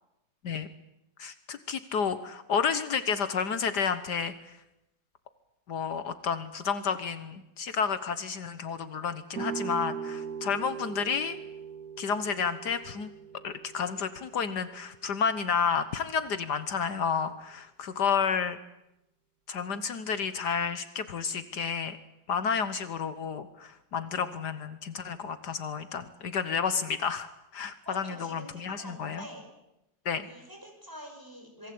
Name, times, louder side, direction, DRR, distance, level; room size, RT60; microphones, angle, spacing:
voice 1, 1.2-4.3 5.7-11.4 12.0-13.1 13.4-18.6 19.5-22.0 22.3-29.2 30.0-30.3, left 6 dB, 70° left, 11 dB, 1.7 m, -31 dB
sound 1, 9.3-15.1, right 6 dB, 55° right, 2.7 m, -40 dB
voice 2, 27.8-29.4 30.2-31.7, equal, 10° right, 3 dB, 6.1 m, -45 dB
27.0 x 23.0 x 8.6 m, 0.90 s
omnidirectional pair, 1.9 m